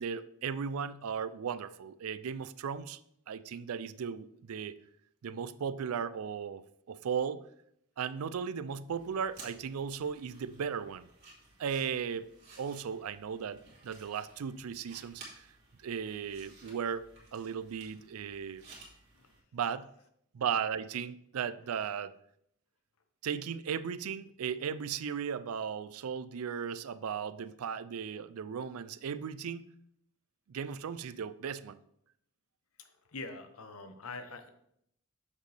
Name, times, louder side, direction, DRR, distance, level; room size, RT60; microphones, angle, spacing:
voice 1, 0.0-3.0 3.3-4.8 5.2-7.4 8.0-11.1 11.6-12.3 12.6-15.5 15.8-17.0 17.3-18.6 19.5-19.9 20.3-22.1 23.2-29.7 30.5-31.8, right 7 dB, 85° right, 15 dB, 0.4 m, -36 dB
sound 1, 8.9-19.4, right 3 dB, 50° right, 2.4 m, -56 dB
voice 2, 32.8-34.5, left 3 dB, 75° left, 8 dB, 0.8 m, -44 dB
7.3 x 6.4 x 3.3 m, 0.74 s
head